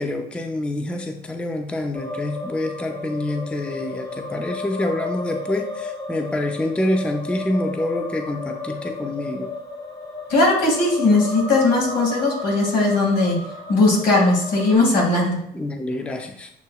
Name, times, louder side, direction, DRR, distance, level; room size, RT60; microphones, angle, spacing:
voice 1, 0.0-9.5 15.5-16.5, left 1 dB, 5° left, 5 dB, 0.4 m, -26 dB
sound 1, 1.9-14.8, left 2 dB, 25° left, 0.9 m, -33 dB
voice 2, 10.3-13.4 13.7-15.4, left 2 dB, 80° left, -2 dB, 1.9 m, -18 dB
8.0 x 2.8 x 2.3 m, 0.69 s
cardioid pair, 110°, 17 cm